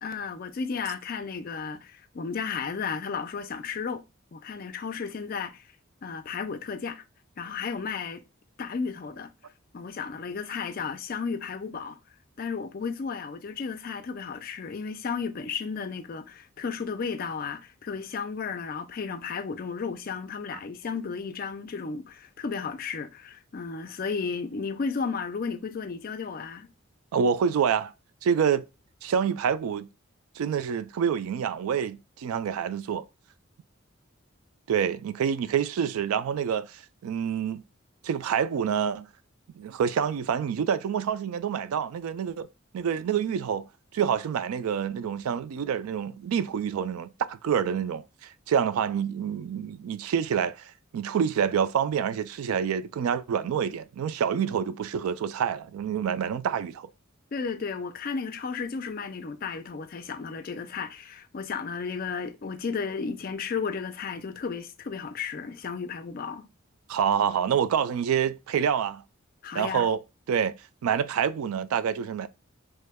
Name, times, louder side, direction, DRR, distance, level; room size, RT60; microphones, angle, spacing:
voice 1, 0.0-4.0 4.3-5.7 6.0-7.0 7.4-8.2 8.6-9.3 9.7-12.0 12.4-26.7 57.3-66.5 69.4-69.9, left 5 dB, 45° left, 0.4 m, -33 dB
voice 2, 27.1-27.9 28.2-28.6 29.0-29.9 30.4-33.0 34.7-37.6 38.0-39.1 39.6-42.5 42.7-43.7 43.9-56.9 66.9-69.0 69.5-70.0 70.3-70.5 70.8-72.3, right 7 dB, 90° right, 0.3 m, -27 dB
3.1 x 2.2 x 3.4 m
head